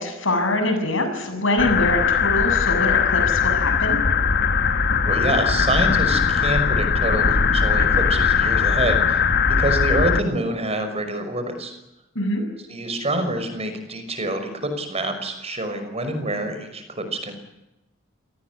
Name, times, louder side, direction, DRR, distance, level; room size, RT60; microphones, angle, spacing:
voice 1, 0.0-4.0 12.1-12.4, left 1 dB, 70° left, 7 dB, 7.6 m, -24 dB
sound 1, 1.6-10.2, left 6 dB, 55° left, 1.4 m, -20 dB
voice 2, 5.0-9.3 9.6-11.7 12.7-17.3, right 1 dB, 30° right, 8 dB, 5.7 m, -26 dB
28.5 x 19.0 x 9.7 m, 0.94 s
head